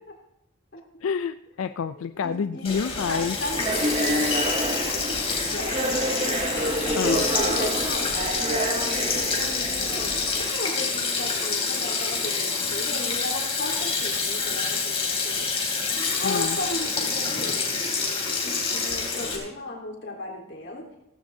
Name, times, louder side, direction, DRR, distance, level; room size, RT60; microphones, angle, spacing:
voice 1, 1.0-3.4 7.0-7.2 16.2-16.6, left 6 dB, 85° left, 11 dB, 0.4 m, -28 dB
voice 2, 2.0-2.7 3.1-5.2 5.5-6.4 7.0-15.5 16.2-17.6 18.4-20.9, left 1 dB, 60° left, -1 dB, 3.7 m, -35 dB
Sink (filling or washing), 2.6-19.4, left 4 dB, 30° left, 3.0 m, -27 dB
sound 1, 2.9-10.5, right 1 dB, 30° right, 0.8 m, -29 dB
17.0 x 15.0 x 2.7 m, 0.88 s
head